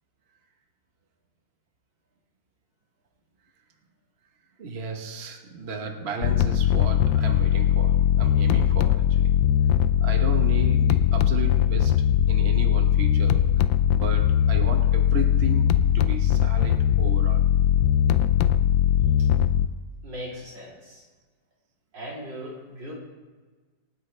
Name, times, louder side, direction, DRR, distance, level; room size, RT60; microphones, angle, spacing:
voice 1, 4.6-9.3 10.0-13.6 13.9-17.5, right 3 dB, 40° right, 3 dB, 1.3 m, -34 dB
sound 1, 6.2-19.7, left 10 dB, 85° left, 1.3 m, -20 dB
voice 2, 20.0-21.0 21.9-22.9, equal, 75° right, -4 dB, 4.0 m, -38 dB
27.5 x 9.4 x 3.4 m, 1.4 s
omnidirectional pair, 2.0 m